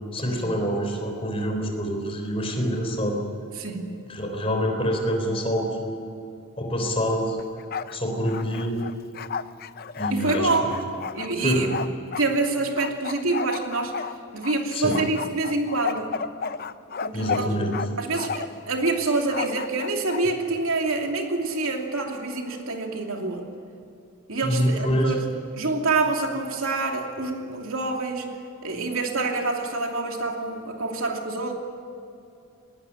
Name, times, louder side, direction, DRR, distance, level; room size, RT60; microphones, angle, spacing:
voice 1, 0.1-3.2 4.1-6.2 6.6-7.4 7.9-8.8 10.0-10.8 11.4-11.8 14.7-15.0 17.1-17.8 24.4-25.2, equal, 25° left, 3 dB, 3.7 m, -26 dB
voice 2, 3.6-4.0 10.1-10.7 11.1-11.7 12.2-14.0 14.3-16.1 17.0-17.5 18.0-23.5 24.3-25.2 25.5-28.3 28.6-31.5, right 3 dB, 75° right, 2 dB, 2.8 m, -26 dB
Bark, 7.4-8.0 8.3-12.3 12.8-14.6 14.9-17.9 18.2-18.6 19.3-20.2, left 6 dB, 45° left, 0.5 m, -32 dB
20.0 x 19.0 x 9.8 m, 2.7 s
head